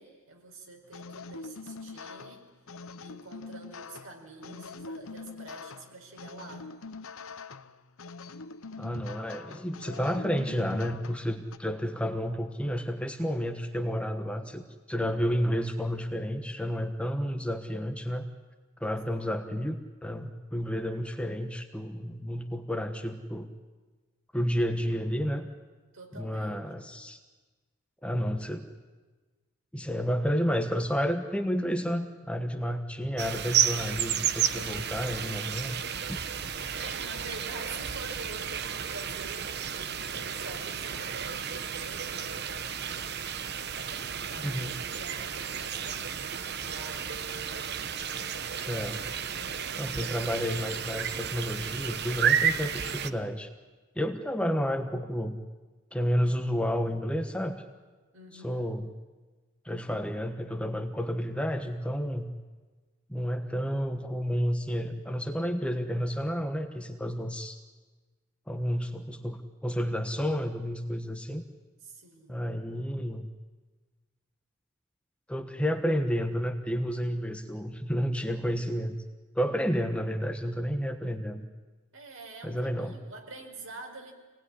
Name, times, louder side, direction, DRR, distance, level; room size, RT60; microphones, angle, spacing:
voice 1, 0.0-2.4 3.0-6.7 25.9-26.9 36.8-43.1 43.8-47.5 58.1-58.8 71.8-72.5 81.9-84.1, right 2 dB, 70° right, 2 dB, 5.1 m, -47 dB
sound 1, 0.9-11.6, left 4 dB, 75° left, 0.9 m, -44 dB
voice 2, 8.8-18.3 18.8-23.5 24.3-25.5 26.1-27.2 28.0-28.7 29.7-35.8 36.1-36.2 44.4-44.7 48.6-49.0 49.8-53.5 53.9-55.4 55.9-57.6 58.4-58.9 59.6-62.3 63.1-67.6 68.5-71.4 72.3-73.3 75.3-79.0 79.3-81.4 82.4-83.0, equal, 5° left, 5 dB, 1.2 m, -31 dB
sound 2, 33.2-53.1, right 8 dB, 50° right, 1.0 m, -32 dB
26.5 x 19.0 x 9.9 m, 1.3 s
head